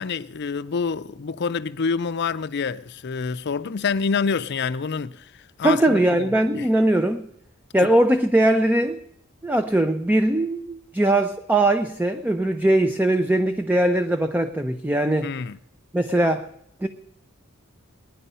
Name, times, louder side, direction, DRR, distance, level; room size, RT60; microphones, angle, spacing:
voice 1, 0.0-6.7 15.2-15.6, left 5 dB, 50° left, 0.5 m, -27 dB
voice 2, 5.6-7.2 7.7-9.0 9.4-15.3 15.9-16.5 16.8-16.9, right 1 dB, 10° right, 0.6 m, -20 dB
20.5 x 10.0 x 5.5 m
head